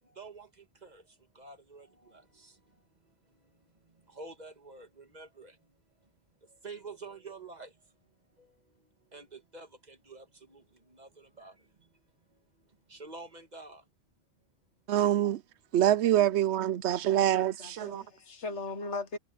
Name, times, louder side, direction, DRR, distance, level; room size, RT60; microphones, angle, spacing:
voice 1, 0.0-6.1 6.4-13.9, right 3 dB, 40° right, 1.8 m, -50 dB
voice 2, 14.9-15.4 15.7-18.0, right 12 dB, 80° right, 0.9 m, -25 dB
voice 3, 17.2-19.2, left 3 dB, 85° left, 1.8 m, -39 dB
omnidirectional pair, 1.1 m